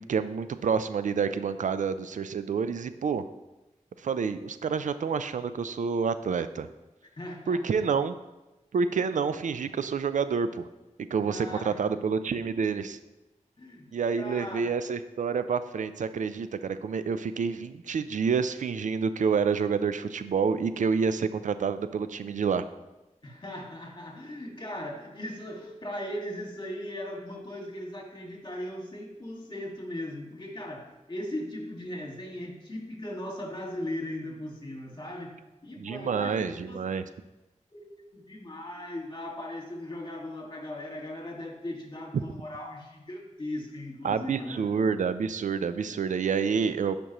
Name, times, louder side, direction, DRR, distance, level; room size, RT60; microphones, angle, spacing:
voice 1, 0.0-3.2 4.0-6.7 7.5-8.2 8.7-10.7 11.1-13.0 13.9-22.6 35.8-37.0 42.1-42.2 44.0-46.9, right 6 dB, 85° right, 12 dB, 0.4 m, -28 dB
voice 2, 7.2-7.9 11.2-11.8 13.6-14.8 23.2-35.4 35.6-36.8 37.7-37.9 38.1-44.7, left 1 dB, 35° left, 0 dB, 2.0 m, -38 dB
11.0 x 5.2 x 3.0 m, 1.0 s
cardioid pair, 55°, 13 cm